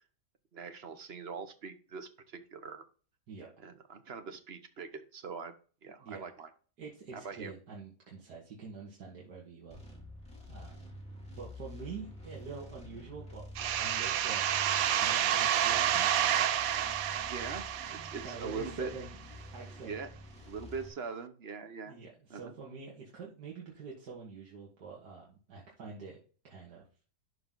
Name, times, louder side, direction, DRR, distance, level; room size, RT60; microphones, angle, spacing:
voice 1, 0.5-2.8 3.6-5.5 5.8-6.5 7.1-7.5 17.3-18.9 19.9-20.1 20.5-22.0 22.3-22.5, right 5 dB, 45° right, 9 dB, 1.0 m, -42 dB
voice 2, 6.8-9.8 10.5-11.0 11.4-14.5 15.0-16.1 18.2-19.2 19.5-20.0 21.9-26.2 26.5-26.8, right 4 dB, 85° right, -3 dB, 2.2 m, -46 dB
sound 1, 9.7-20.9, left 1 dB, 5° left, 2.3 m, -49 dB
sound 2, 13.5-19.0, right 10 dB, 70° right, 1.0 m, -30 dB
11.5 x 3.9 x 3.8 m, 0.39 s
omnidirectional pair, 1.7 m